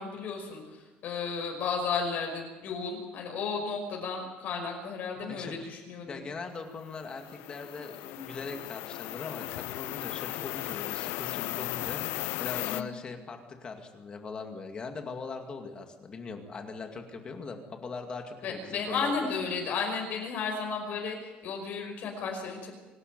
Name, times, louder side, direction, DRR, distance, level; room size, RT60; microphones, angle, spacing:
voice 1, 0.0-6.2 12.6-12.9 18.4-22.7, left 5 dB, 50° left, 1 dB, 5.3 m, -33 dB
voice 2, 5.3-5.7 6.1-12.0 12.4-19.3, left 4 dB, 25° left, 5 dB, 2.2 m, -40 dB
sound 1, 6.9-12.8, left 17 dB, 80° left, 0.7 m, -36 dB
26.0 x 12.0 x 9.5 m, 1.2 s
cardioid pair, 175°, 4 cm